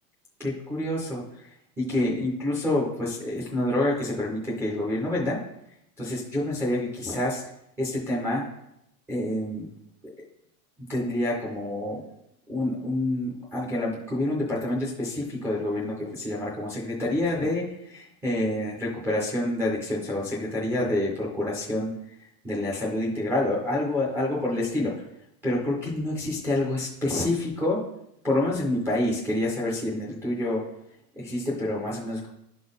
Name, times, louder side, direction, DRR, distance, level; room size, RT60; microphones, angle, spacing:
voice 1, 0.4-1.5 1.8-5.4 6.0-7.4 7.8-8.4 9.1-9.7 10.9-12.0 12.5-21.9 22.4-24.9 25.4-27.9 28.2-30.6 31.2-32.3, left 1 dB, 5° right, -6 dB, 0.4 m, -27 dB
11.0 x 3.8 x 3.9 m, 0.80 s
supercardioid pair, 165°, 47 cm